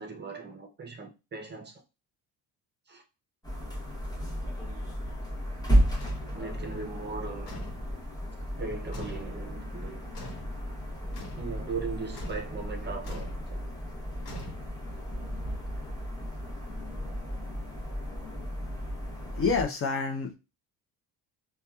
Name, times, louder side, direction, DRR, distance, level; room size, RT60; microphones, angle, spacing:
voice 1, 0.0-1.8 2.9-3.0 6.3-7.6 8.6-10.1 11.0-13.6, right 4 dB, 30° right, 0.6 m, -39 dB
sound 1, 3.4-19.6, equal, 10° left, 0.8 m, -33 dB
sound 2, 6.0-6.3 7.5-7.9 8.9-9.3 10.1-10.5 11.1-11.5 12.1-12.5 13.0-13.4 14.3-14.9, equal, 80° left, 1.1 m, -43 dB
voice 2, 19.3-20.3, left 4 dB, 35° left, 0.5 m, -28 dB
2.8 x 2.3 x 2.3 m
cardioid pair, 100°, 38 cm